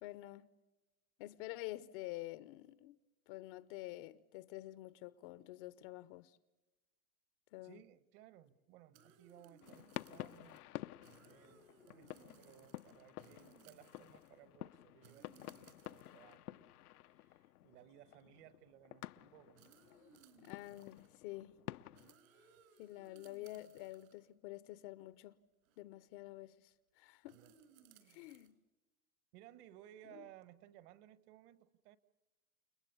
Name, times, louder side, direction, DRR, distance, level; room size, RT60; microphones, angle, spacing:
voice 1, 0.0-0.5 1.2-3.0 3.3-6.4 7.5-7.8 20.4-21.6 22.8-25.4 25.8-27.4 28.1-28.5 30.0-30.2, left 17 dB, 35° left, 0.7 m, -48 dB
voice 2, 7.6-10.6 11.2-16.8 17.1-19.7 27.3-27.6 27.9-28.3 29.3-32.0, right 12 dB, 40° right, 1.4 m, -61 dB
sound 1, 8.9-10.6 10.9-14.4 15.0-16.3 17.1-17.2 17.8-17.9 18.1-18.4 19.5-21.2 21.9-24.3 25.6-25.8 27.2-28.5, right 7 dB, 65° right, 4.5 m, -65 dB
sound 2, 9.6-22.1, left 14 dB, 80° left, 0.7 m, -51 dB
29.5 x 20.5 x 6.9 m
hypercardioid pair, 135°, 45 cm